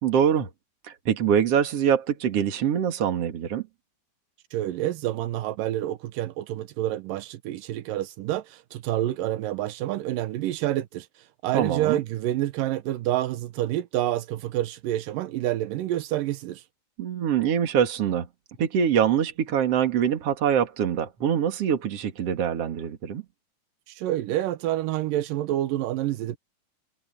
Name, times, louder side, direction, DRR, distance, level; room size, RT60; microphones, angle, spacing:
voice 1, 0.0-0.5 1.1-3.6 11.5-12.0 17.0-18.3 18.6-23.2, right 8 dB, 45° right, 2.4 m, -24 dB
voice 2, 4.5-11.1 11.4-16.6 24.0-26.4, right 14 dB, 75° right, 2.1 m, -28 dB
omnidirectional pair, 5.0 m